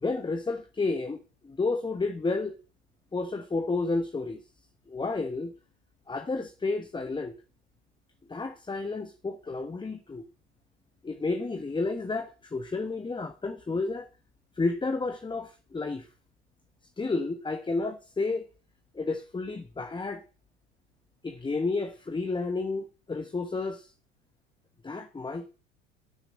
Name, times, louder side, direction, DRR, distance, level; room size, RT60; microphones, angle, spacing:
voice 1, 0.0-2.6 3.1-4.4 4.9-5.5 6.1-7.3 8.3-10.2 11.0-14.1 14.5-16.1 17.0-18.5 18.9-20.2 21.2-23.9 24.8-25.5, left 3 dB, 15° left, 1.2 m, -31 dB
12.5 x 6.6 x 8.8 m
figure-of-eight pair, 75°, 36 cm